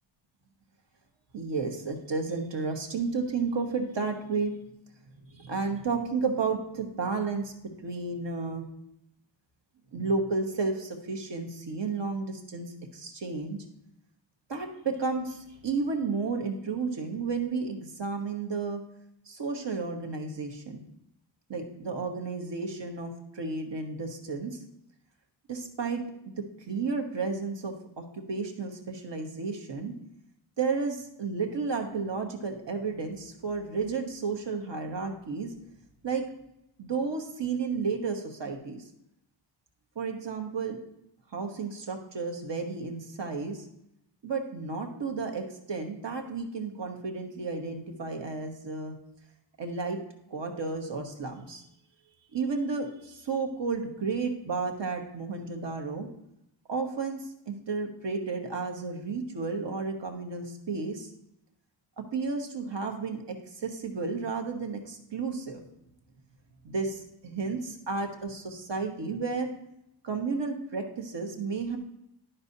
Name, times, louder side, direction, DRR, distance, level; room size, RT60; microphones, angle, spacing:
voice 1, 1.3-4.5 5.3-7.5 7.8-8.6 9.9-13.6 14.5-18.8 19.3-20.8 21.5-24.6 25.5-29.9 30.6-35.5 36.0-36.2 36.8-38.8 39.9-40.8 41.3-43.6 44.2-49.0 49.6-50.0 50.3-51.6 52.3-56.1 56.7-61.1 62.0-65.6 66.6-69.5 70.0-71.8, right 4 dB, 70° right, 3 dB, 1.1 m, -32 dB
11.0 x 5.5 x 2.7 m, 0.81 s
wide cardioid pair, 90°, 45 cm